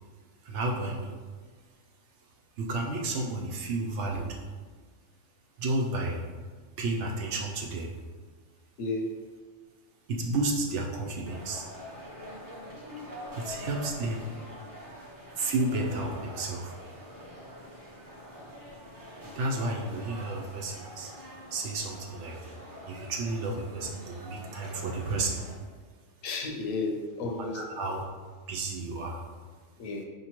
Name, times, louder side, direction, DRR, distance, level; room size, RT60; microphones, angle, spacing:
voice 1, 0.4-1.1 2.6-4.3 5.6-6.2 6.8-7.9 10.1-11.7 13.4-14.3 15.4-16.7 19.4-21.1 21.5-22.4 22.9-25.4 27.2-28.1 28.5-29.2, right 2 dB, 65° right, -1 dB, 0.9 m, -32 dB
sound 1, 11.2-25.5, equal, 25° right, 0.5 m, -45 dB
voice 2, 26.2-27.6 29.8-30.0, left 3 dB, 80° left, 2 dB, 1.0 m, -32 dB
5.1 x 2.8 x 2.9 m, 1.5 s
omnidirectional pair, 1.4 m